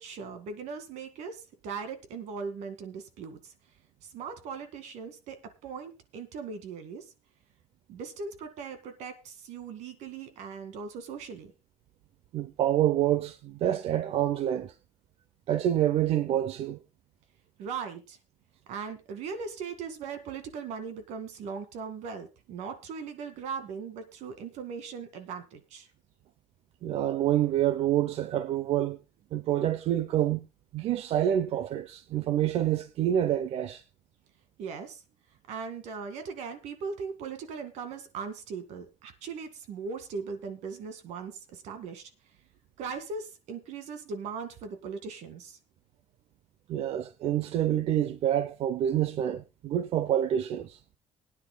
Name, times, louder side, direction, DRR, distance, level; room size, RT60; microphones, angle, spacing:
voice 1, 0.0-3.5 4.0-7.1 7.9-11.5 17.6-18.2 18.7-25.9 34.6-35.0 35.5-42.1 42.8-45.6, right 5 dB, 90° right, 2.1 m, -39 dB
voice 2, 12.3-14.7 15.5-16.8 26.8-29.0 29.3-30.5 30.7-33.8 46.7-50.8, right 11 dB, 60° right, 0.7 m, -27 dB
24.0 x 9.8 x 2.3 m
cardioid pair, 155°, 11 cm